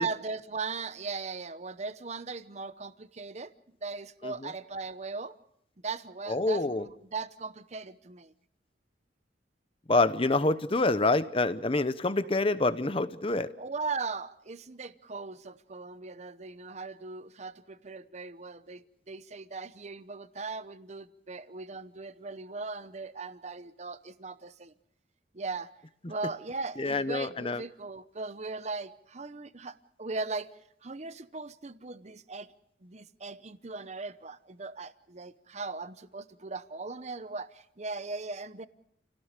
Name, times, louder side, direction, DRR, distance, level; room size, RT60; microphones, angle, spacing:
voice 1, 0.0-3.5 3.8-5.4 5.8-8.3 10.4-10.5 13.6-24.7 25.3-25.7 26.1-30.5 30.8-32.5 32.8-38.7, right 4 dB, 35° right, 13 dB, 0.8 m, -38 dB
voice 2, 6.3-6.9 9.9-13.5 26.8-27.6, left 2 dB, 30° left, 13 dB, 0.8 m, -27 dB
29.0 x 17.5 x 6.6 m, 0.74 s
head